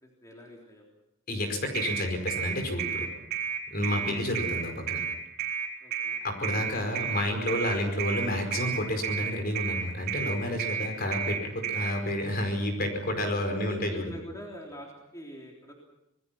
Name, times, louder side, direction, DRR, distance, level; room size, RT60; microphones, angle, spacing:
voice 1, 0.0-0.9 5.8-6.2 10.8-11.0 13.4-15.7, equal, 15° left, -1 dB, 3.5 m, -45 dB
voice 2, 1.3-3.1 3.7-5.0 6.2-14.1, left 1 dB, 45° left, 5 dB, 5.0 m, -30 dB
sound 1, 1.7-11.9, right 7 dB, 45° right, 4.3 m, -31 dB
26.5 x 20.5 x 5.9 m, 0.88 s
head